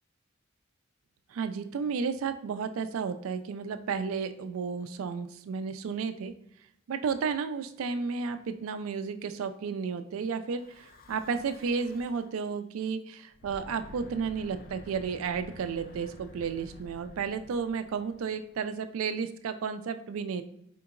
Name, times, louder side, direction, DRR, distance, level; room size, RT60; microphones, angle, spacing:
voice 1, 1.3-6.3 6.9-20.4, right 5 dB, 80° right, 9 dB, 0.4 m, -32 dB
Breathing / Wind, 10.4-12.4 13.3-18.7, left 2 dB, 45° left, 0.4 m, -51 dB
4.4 x 2.8 x 2.4 m, 0.75 s
head